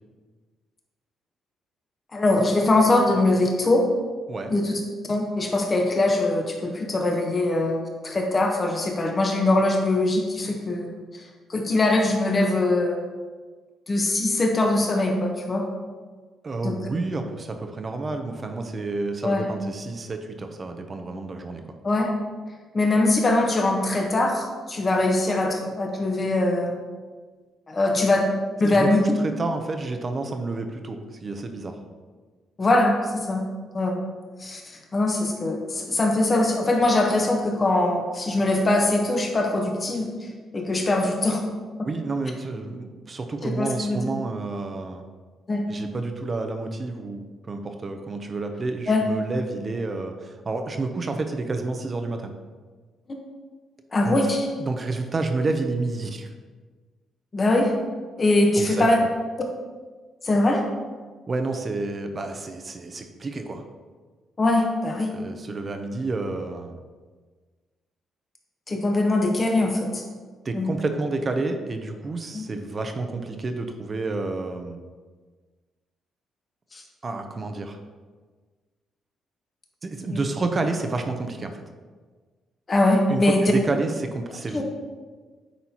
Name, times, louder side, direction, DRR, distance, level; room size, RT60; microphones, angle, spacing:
voice 1, 2.1-3.8 4.5-4.8 5.1-10.9 11.5-13.0 13.9-15.6 16.6-16.8 19.2-19.5 21.8-22.1 22.7-26.8 27.7-28.3 28.6-29.0 32.6-33.5 33.7-34.0 34.4-34.6 34.9-40.1 40.5-41.4 43.4-44.0 45.5-45.6 48.9-49.0 53.9-54.5 57.3-57.7 58.2-59.0 60.2-60.6 64.4-65.1 68.7-70.0 70.5-70.7 72.3-72.4 76.7-76.8 80.1-80.2 82.7-83.5 84.5-84.6, left 2 dB, 30° left, 1 dB, 1.2 m, -22 dB
voice 2, 16.4-21.6 28.7-31.8 41.8-45.0 45.7-52.3 54.0-54.2 54.6-56.3 58.5-58.9 61.3-63.6 65.1-66.8 70.4-74.8 77.0-77.8 79.8-81.6 83.1-84.6, right 3 dB, 35° right, 6 dB, 0.7 m, -29 dB
9.4 x 4.2 x 3.0 m, 1.4 s
cardioid pair, 90°, 0 cm